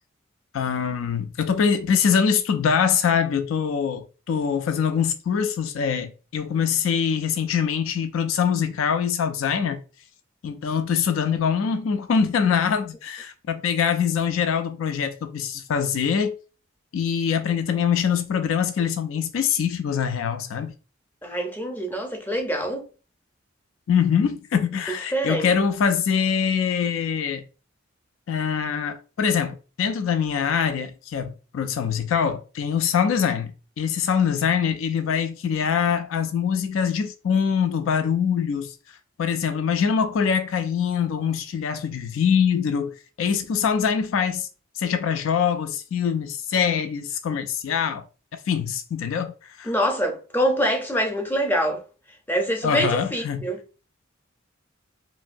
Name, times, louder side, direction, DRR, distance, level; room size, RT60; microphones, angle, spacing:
voice 1, 0.5-9.8 10.4-16.3 16.9-20.7 23.9-27.4 28.3-38.7 39.2-44.5 44.8-48.0 48.5-49.7 52.6-53.4, left 7 dB, 75° left, 0.4 m, -24 dB
voice 2, 21.2-22.9 25.1-25.6 49.6-51.8 52.3-53.6, equal, 10° left, 0.5 m, -25 dB
3.0 x 2.6 x 2.5 m
head